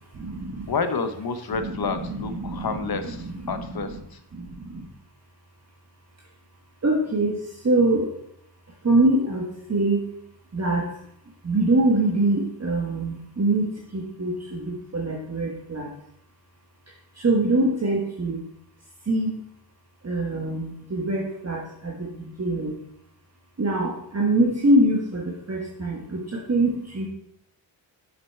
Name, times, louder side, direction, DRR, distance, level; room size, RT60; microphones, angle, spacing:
voice 1, 0.1-0.7 2.4-2.7 4.3-4.9 6.8-8.1 8.8-10.1 10.5-10.9 11.4-15.9 17.2-18.4 19.1-19.4 20.0-22.8 23.6-27.1, right 2 dB, 35° right, -1 dB, 1.4 m, -24 dB
voice 2, 0.7-4.2, left 4 dB, 55° left, 9 dB, 1.0 m, -29 dB
7.4 x 6.6 x 4.4 m, 0.74 s
wide cardioid pair, 85°, 44 cm